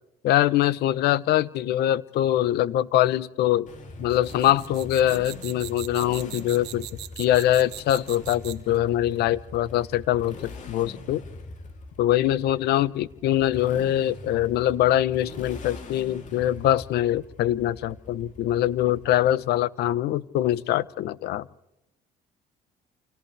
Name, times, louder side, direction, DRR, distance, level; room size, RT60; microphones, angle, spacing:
voice 1, 0.2-3.7 4.0-6.9 7.2-11.2 12.0-21.5, left 13 dB, 75° left, 18 dB, 0.9 m, -23 dB
Motorcycle, 3.7-19.4, left 2 dB, 45° left, 3.1 m, -43 dB
sound 1, 4.1-8.8, right 15 dB, 80° right, 1.7 m, -40 dB
29.0 x 28.0 x 3.4 m, 0.86 s
cardioid pair, 110°, 17 cm